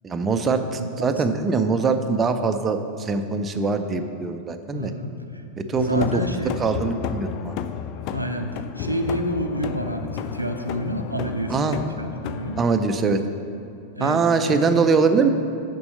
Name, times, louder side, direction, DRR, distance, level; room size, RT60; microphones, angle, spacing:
voice 1, 0.0-4.9 5.6-6.2 6.6-7.5 11.5-11.8 12.6-13.2 14.0-15.3, right 4 dB, 20° right, 7 dB, 0.5 m, -22 dB
voice 2, 4.7-5.4 5.7-6.6 8.1-12.6 14.0-14.8, equal, 85° right, 5 dB, 0.5 m, -29 dB
sound 1, 5.7-12.6, left 8 dB, 40° left, 0.3 m, -32 dB
6.9 x 5.4 x 6.6 m, 2.6 s
figure-of-eight pair, 90°, 0 cm